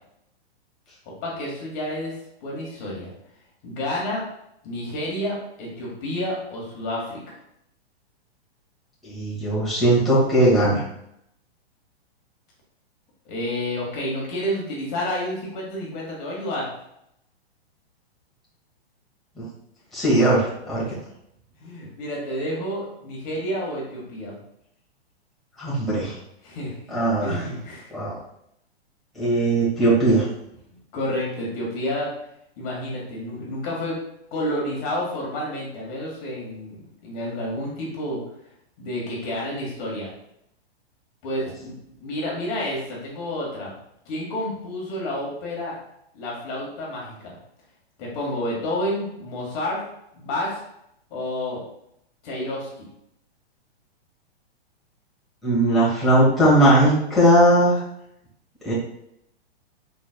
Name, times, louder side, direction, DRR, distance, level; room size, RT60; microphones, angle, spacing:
voice 1, 1.2-2.1 2.4-3.1 3.6-4.2 4.6-7.2 13.2-16.7 20.8-21.0 21.6-24.3 26.4-26.7 27.2-27.9 30.9-32.1 32.6-34.0 34.3-38.2 38.8-40.1 41.2-41.7 42.0-43.7 44.0-45.7 46.1-47.3 48.0-49.8 50.1-50.6 51.1-51.6 52.2-52.9, left 1 dB, 35° left, -4 dB, 1.6 m, -29 dB
voice 2, 9.0-10.8 19.4-19.5 19.9-20.8 25.6-26.1 26.9-27.4 27.9-28.1 29.1-30.2 55.4-57.8 58.6-58.7, right 1 dB, ahead, -9 dB, 1.7 m, -19 dB
5.1 x 4.1 x 2.2 m, 0.77 s
hypercardioid pair, 130°, 32 cm